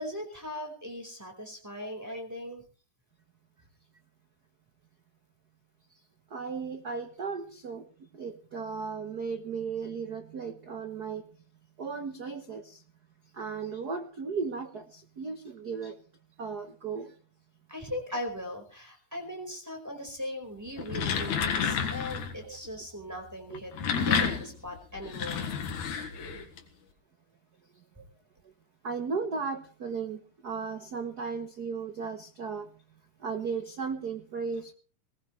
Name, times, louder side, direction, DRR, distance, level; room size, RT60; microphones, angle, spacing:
voice 1, 0.0-2.6 17.7-25.5, left 1 dB, 5° right, 4.6 m, -39 dB
voice 2, 6.3-7.9 8.1-11.2 11.8-12.8 13.4-16.0 16.4-17.1 22.4-22.6 23.5-23.6 28.8-32.7 33.2-34.7, right 5 dB, 65° right, 0.9 m, -35 dB
sound 1, 20.7-22.4 23.5-26.6, left 6 dB, 70° left, 3.0 m, -30 dB
20.5 x 19.5 x 3.3 m
omnidirectional pair, 3.6 m